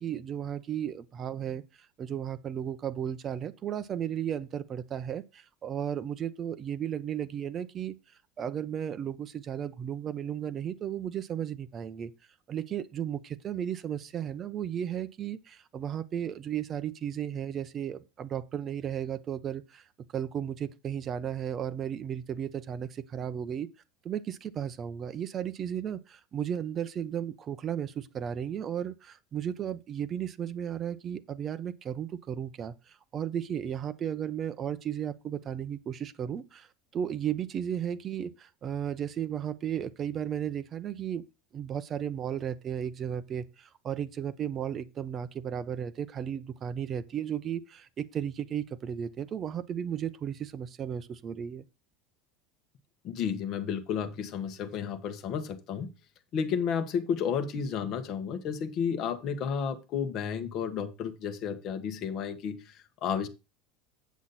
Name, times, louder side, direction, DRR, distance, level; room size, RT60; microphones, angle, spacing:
voice 1, 0.0-1.6 2.0-7.9 8.4-12.1 12.5-19.8 20.1-23.7 24.0-41.3 41.5-51.6, right 9 dB, 25° right, 0.7 m, -34 dB
voice 2, 53.0-55.9 56.3-63.3, left 7 dB, 35° left, 1.4 m, -32 dB
8.3 x 7.3 x 4.2 m
cardioid pair, 175°, 0 cm